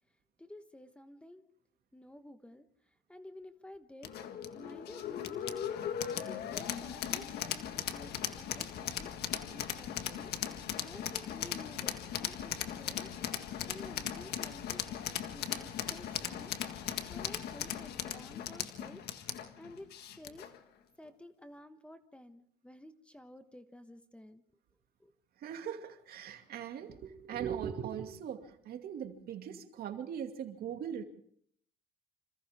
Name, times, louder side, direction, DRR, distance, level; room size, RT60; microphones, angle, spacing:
voice 1, 0.4-1.4 1.9-2.7 3.1-4.1 4.5-5.6 6.1-13.1 13.7-15.0 15.3-19.0 19.6-19.9 20.2-20.4 21.0-24.4 25.0-25.1, left 1 dB, 5° left, 1.3 m, -52 dB
sound 1, 4.0-20.6, left 10 dB, 70° left, 1.8 m, -38 dB
voice 2, 25.4-31.0, right 8 dB, 65° right, 2.4 m, -40 dB
27.0 x 26.5 x 3.7 m
cardioid pair, 110°, 17 cm